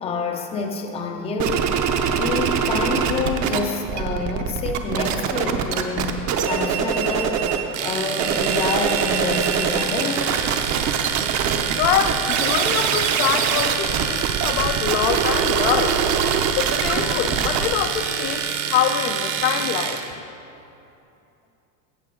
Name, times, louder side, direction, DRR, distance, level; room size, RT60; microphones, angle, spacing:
voice 1, 0.0-1.7 2.1-6.1 6.5-7.4 7.8-10.4, left 4 dB, 15° left, 3 dB, 0.5 m, -27 dB
sound 1, 1.4-3.6 3.8-7.7 8.1-19.6, right 7 dB, 35° right, 0.7 m, -24 dB
Domestic sounds home sounds, 7.7-20.1, right 8 dB, 55° right, 1.1 m, -27 dB
voice 2, 11.8-16.0 16.5-18.4 18.7-20.0, left 9 dB, 70° left, 8 dB, 0.8 m, -24 dB
15.0 x 7.5 x 3.7 m, 2.8 s
supercardioid pair, 135°, 46 cm